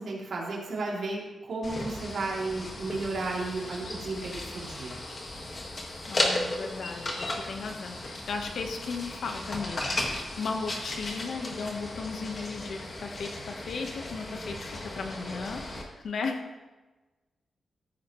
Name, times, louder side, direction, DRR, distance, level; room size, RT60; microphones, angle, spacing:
voice 1, 0.0-5.0, right 3 dB, 65° right, -4 dB, 2.9 m, -33 dB
sound 1, 1.6-15.8, left 1 dB, 35° left, 1.7 m, -35 dB
voice 2, 6.1-15.6 16.0-16.5, left 4 dB, 70° left, 4 dB, 1.1 m, -36 dB
14.0 x 10.0 x 3.1 m, 1.2 s
wide cardioid pair, 160°, 0 cm